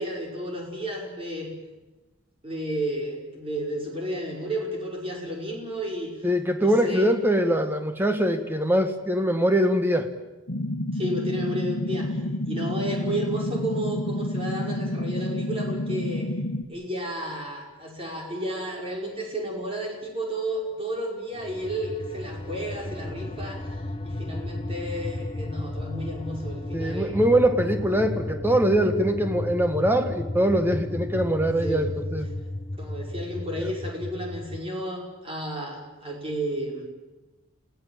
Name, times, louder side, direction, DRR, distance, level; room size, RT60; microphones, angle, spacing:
voice 1, 0.0-1.5 2.4-6.1 6.6-7.1 10.9-12.2 12.5-16.3 16.7-27.2 31.6-31.9 32.8-36.9, right 1 dB, 25° right, -1 dB, 5.3 m, -32 dB
voice 2, 6.2-10.1 26.7-32.3, right 1 dB, 10° right, 7 dB, 1.6 m, -23 dB
sound 1, 10.5-16.6, left 1 dB, 60° left, 1.3 m, -29 dB
sound 2, 21.3-34.6, left 1 dB, 25° left, 0.7 m, -34 dB
29.0 x 17.5 x 7.5 m, 1.1 s
head